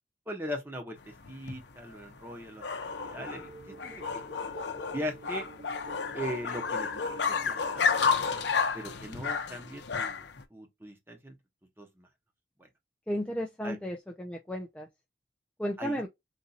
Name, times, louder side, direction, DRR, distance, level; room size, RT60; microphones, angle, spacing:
voice 1, 0.3-2.6 3.0-3.5 3.8-4.2 4.9-5.5 6.1-6.9 7.3-7.9 8.7-10.2 10.5-11.3 11.8-12.1 12.6-12.7 13.6-13.8 15.8-16.1, equal, 10° right, 0.9 m, -39 dB
sound 1, 1.0-10.4, left 5 dB, 70° left, 0.7 m, -31 dB
sound 2, 2.9-8.1, right 3 dB, 70° right, 1.6 m, -49 dB
voice 2, 13.1-14.9 15.6-16.1, equal, 5° left, 0.4 m, -34 dB
4.1 x 2.6 x 2.3 m
head